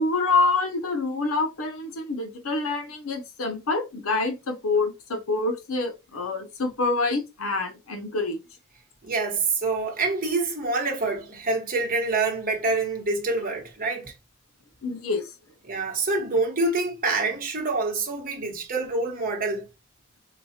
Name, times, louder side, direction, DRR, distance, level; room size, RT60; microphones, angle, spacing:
voice 1, 0.0-8.4 14.8-15.3, left 3 dB, 70° left, 0.7 m, -26 dB
voice 2, 9.0-14.1 15.6-19.7, right 3 dB, 40° right, 1.1 m, -26 dB
4.6 x 2.3 x 2.8 m
head